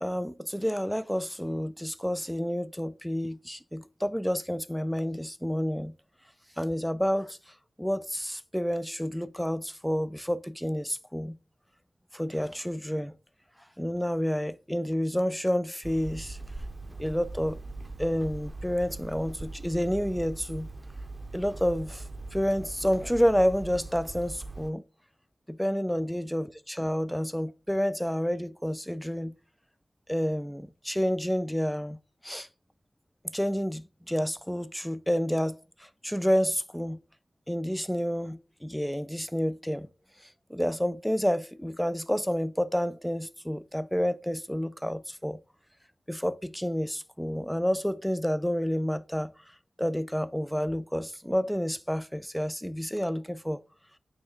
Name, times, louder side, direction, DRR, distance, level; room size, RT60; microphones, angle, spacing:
voice 1, 0.0-5.9 6.6-7.4 7.8-11.4 12.1-13.1 13.8-16.4 17.0-17.6 18.0-20.7 21.3-24.8 25.5-29.3 30.1-32.0 32.2-32.5 33.3-37.0 37.5-39.9 40.5-45.4 46.1-49.3 49.8-53.6, equal, ahead, 0.4 m, -29 dB
Hammer, 15.8-24.7, right 2 dB, 30° right, 0.7 m, -41 dB
9.0 x 3.4 x 3.7 m
wide cardioid pair, 110°, 0 cm